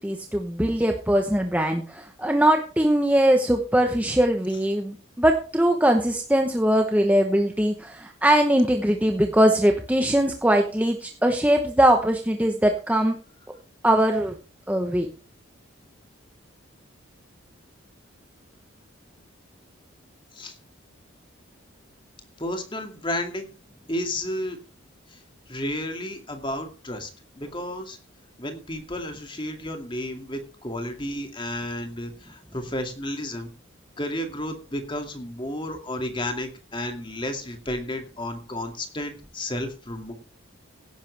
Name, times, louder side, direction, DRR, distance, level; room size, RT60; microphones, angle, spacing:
voice 1, 0.0-13.2 13.8-14.3 14.7-15.1, right 1 dB, 5° right, 4 dB, 1.0 m, -21 dB
voice 2, 22.4-23.5 23.9-24.6 25.1-25.2 25.5-27.1 27.4-28.0 28.4-33.5 34.0-40.1, left 1 dB, 25° left, 5 dB, 2.3 m, -32 dB
16.5 x 10.5 x 3.4 m, 0.36 s
head